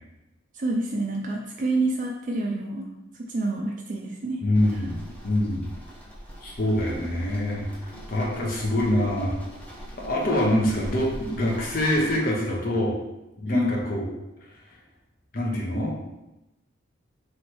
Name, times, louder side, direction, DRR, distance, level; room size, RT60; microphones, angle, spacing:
voice 1, 0.5-2.9 3.2-4.4 4.7-4.8 10.4-10.5 13.5-13.7, right 2 dB, 40° right, -1 dB, 0.4 m, -28 dB
voice 2, 4.4-5.7 6.4-7.6 8.1-9.3 10.0-13.0 13.4-14.0 15.3-16.0, left 1 dB, 45° left, -3 dB, 0.8 m, -25 dB
sound 1, 4.5-12.2, equal, 5° left, 0.8 m, -43 dB
3.1 x 3.1 x 4.4 m, 0.95 s
head